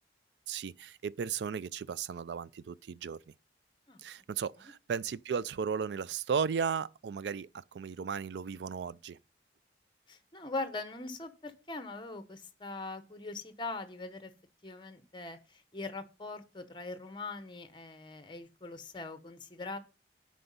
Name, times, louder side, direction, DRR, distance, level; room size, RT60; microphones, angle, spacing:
voice 1, 0.5-3.2 4.0-9.2, right 6 dB, 75° right, 0.4 m, -35 dB
voice 2, 10.1-14.3 14.6-19.8, left 3 dB, 25° left, 0.8 m, -41 dB
7.8 x 5.1 x 5.4 m
head